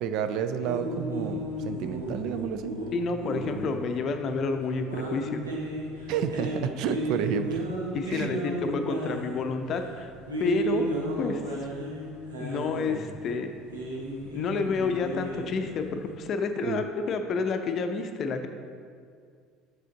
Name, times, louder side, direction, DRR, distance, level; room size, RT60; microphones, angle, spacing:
voice 1, 0.0-2.7 6.1-7.7 8.1-8.3 16.6-16.8, right 7 dB, 60° right, 9 dB, 0.3 m, -30 dB
sound 1, 0.6-16.1, right 1 dB, 85° right, 0.8 m, -34 dB
voice 2, 2.9-5.4 7.9-10.1 10.4-10.9 11.2-11.4 12.4-13.5 14.3-18.5, left 4 dB, 45° left, 7 dB, 0.5 m, -29 dB
6.3 x 5.0 x 3.9 m, 2.2 s
figure-of-eight pair, 60°, 0 cm